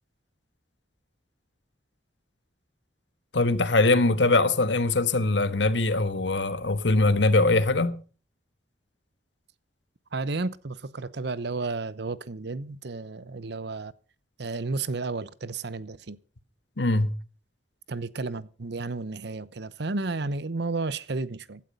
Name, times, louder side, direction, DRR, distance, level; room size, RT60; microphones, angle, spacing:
voice 1, 3.3-7.9 16.8-17.1, left 2 dB, 80° left, 1.4 m, -22 dB
voice 2, 10.1-13.9 14.4-16.2 17.9-21.6, right 3 dB, 70° right, 0.8 m, -32 dB
16.0 x 12.0 x 5.3 m
head